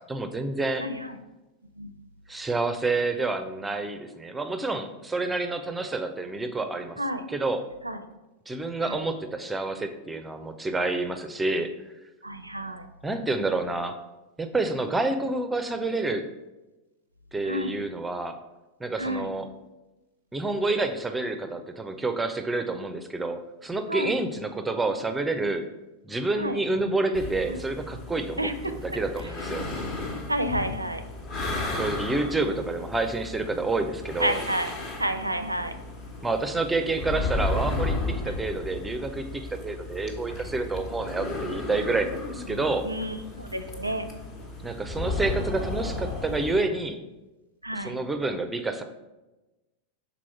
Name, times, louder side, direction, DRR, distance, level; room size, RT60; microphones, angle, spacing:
voice 1, 0.1-0.8 2.3-7.0 7.3-7.6 8.5-11.7 13.0-14.0 14.4-16.3 17.3-18.4 18.8-19.5 20.3-25.7 26.1-29.6 31.7-34.4 36.2-42.8 44.6-47.0 47.8-48.8, right 2 dB, 10° right, 7 dB, 0.5 m, -28 dB
voice 2, 0.8-1.2 1.8-1.9 7.0-7.2 7.8-8.0 8.8-9.0 12.2-12.9 17.4-17.7 19.0-19.3 23.9-24.1 26.4-26.6 27.5-27.6 28.4-28.7 30.3-31.1 34.2-34.7 35.0-35.7 42.8-44.1 47.6-48.0, right 1 dB, 85° right, 9 dB, 0.5 m, -30 dB
sound 1, 27.1-46.6, left 2 dB, 35° left, 1.2 m, -34 dB
6.1 x 4.1 x 4.4 m, 1.1 s
figure-of-eight pair, 90°, 0 cm